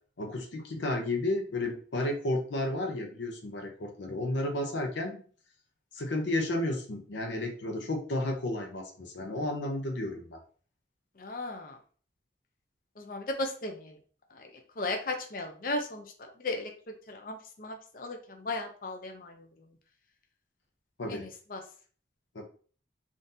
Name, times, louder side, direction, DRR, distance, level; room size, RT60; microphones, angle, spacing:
voice 1, 0.2-5.2 5.9-10.4 21.0-21.3 22.3-22.4, left 1 dB, 85° left, 3 dB, 0.6 m, -32 dB
voice 2, 11.2-11.8 13.0-14.0 14.3-14.5 14.8-16.7 17.1-19.5 21.1-21.6, left 2 dB, 50° left, 3 dB, 0.5 m, -36 dB
3.7 x 2.5 x 2.6 m, 0.43 s
head